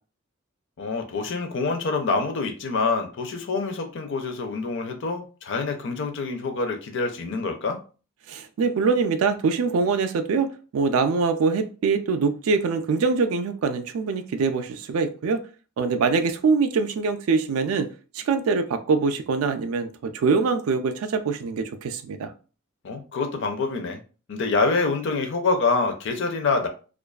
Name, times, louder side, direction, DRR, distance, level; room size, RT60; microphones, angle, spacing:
voice 1, 0.8-7.8 22.8-24.0 24.3-26.7, left 4 dB, 55° left, 0.5 m, -26 dB
voice 2, 8.3-15.4 15.8-17.9 18.1-22.3, right 4 dB, 70° right, 0.3 m, -24 dB
2.4 x 2.3 x 2.3 m
head